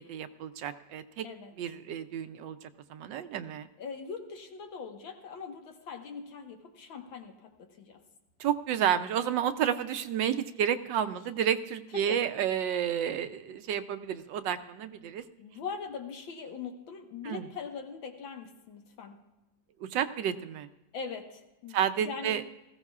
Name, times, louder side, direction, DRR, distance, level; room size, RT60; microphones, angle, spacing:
voice 1, 0.0-1.3 1.6-3.7 8.4-15.2 17.2-17.4 19.9-20.7 21.7-22.5, right 9 dB, 75° right, 10 dB, 1.3 m, -31 dB
voice 2, 1.2-1.5 3.8-8.0 11.9-12.3 15.4-19.2 20.9-22.4, left 5 dB, 85° left, 4 dB, 2.1 m, -41 dB
19.5 x 15.0 x 2.4 m, 1.0 s
omnidirectional pair, 2.1 m